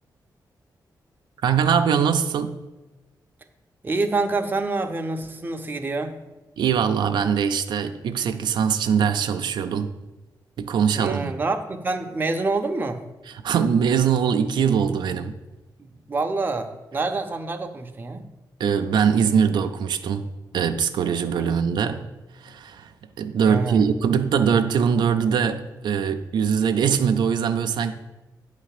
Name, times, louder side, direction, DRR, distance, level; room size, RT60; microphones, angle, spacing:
voice 1, 1.4-2.5 6.6-9.9 10.6-11.3 13.3-15.3 18.6-20.3 20.5-22.1 22.3-22.9 23.2-27.9, right 7 dB, 85° right, 0.4 m, -22 dB
voice 2, 3.8-6.2 10.9-13.0 15.8-18.3 21.4-21.5 23.5-23.8, right 3 dB, 25° right, 0.6 m, -27 dB
9.1 x 3.3 x 6.5 m
wide cardioid pair, 120°, 8 cm